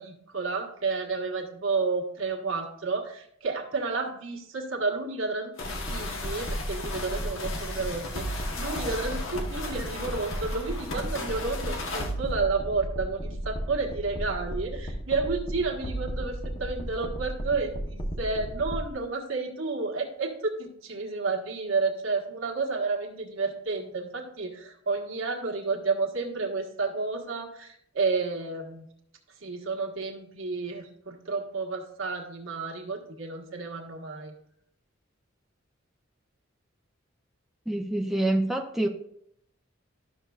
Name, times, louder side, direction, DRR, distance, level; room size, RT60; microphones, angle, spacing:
voice 1, 0.0-28.9 29.4-34.3, right 4 dB, 80° right, 0 dB, 1.5 m, -31 dB
sound 1, 5.6-12.1, left 3 dB, 75° left, 1.1 m, -37 dB
sound 2, 5.6-18.9, right 1 dB, 30° left, 0.9 m, -34 dB
voice 2, 37.7-38.9, right 1 dB, ahead, 2 dB, 0.5 m, -26 dB
12.0 x 6.5 x 2.4 m, 0.70 s
head